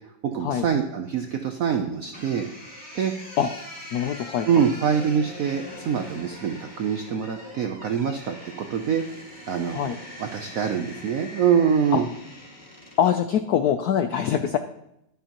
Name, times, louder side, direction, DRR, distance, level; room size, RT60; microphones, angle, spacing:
voice 1, 0.2-2.5 2.9-3.1 4.5-9.9 10.2-12.1, right 7 dB, 75° right, 5 dB, 0.7 m, -25 dB
sound 1, 2.1-13.2, left 1 dB, 20° left, 3.3 m, -42 dB
voice 2, 3.9-4.5 9.7-10.0 11.9-12.0 13.0-14.6, left 9 dB, 85° left, 9 dB, 0.8 m, -23 dB
11.5 x 11.0 x 2.9 m, 0.82 s
omnidirectional pair, 2.2 m